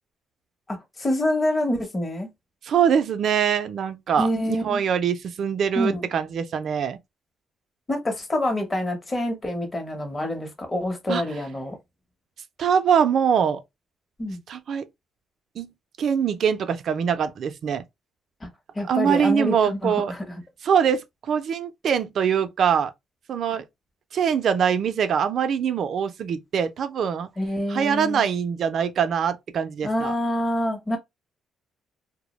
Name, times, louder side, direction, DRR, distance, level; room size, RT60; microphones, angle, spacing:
voice 1, 0.7-2.3 4.2-4.8 5.8-6.1 7.9-11.8 14.2-14.4 18.4-18.5 18.7-20.2 27.4-28.3 29.8-31.0, left 1 dB, 25° left, 0.8 m, -26 dB
voice 2, 2.6-7.0 11.1-11.2 12.6-13.6 14.5-14.9 15.6-15.7 16.0-17.8 18.9-20.1 20.6-22.9 23.3-23.6 24.1-27.3 27.7-30.1, right 7 dB, 60° right, 0.4 m, -23 dB
2.2 x 2.0 x 2.9 m
cardioid pair, 90°, 0 cm